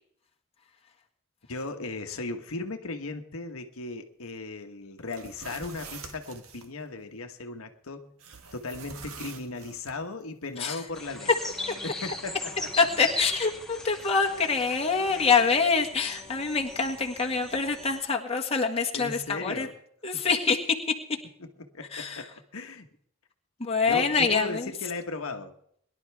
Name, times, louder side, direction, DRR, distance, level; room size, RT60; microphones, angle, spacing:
voice 1, 1.5-8.1 8.5-11.3 11.8-12.7 18.9-19.7 20.1-20.3 21.4-22.9 23.9-25.5, left 3 dB, 80° left, 5 dB, 1.2 m, -37 dB
sound 1, 5.0-6.7 8.2-10.0, right 5 dB, 85° right, 1.5 m, -45 dB
sound 2, 10.9-18.0, left 2 dB, ahead, 2.2 m, -39 dB
voice 2, 12.8-19.7 20.0-20.6 21.9-22.2 23.6-24.7, left 5 dB, 30° left, 1 dB, 1.7 m, -25 dB
22.5 x 11.5 x 3.4 m, 0.66 s
head